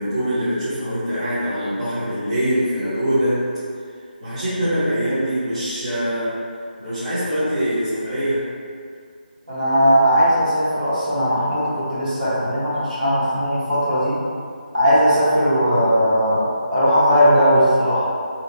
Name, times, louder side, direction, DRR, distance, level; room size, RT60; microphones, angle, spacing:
voice 1, 0.0-3.4 4.2-6.3 6.8-8.4, equal, 35° right, -15 dB, 0.8 m, -23 dB
voice 2, 9.5-14.2 14.7-18.1, equal, 55° right, -11 dB, 1.1 m, -18 dB
2.8 x 2.1 x 2.5 m, 2.2 s
figure-of-eight pair, 170°, 5 cm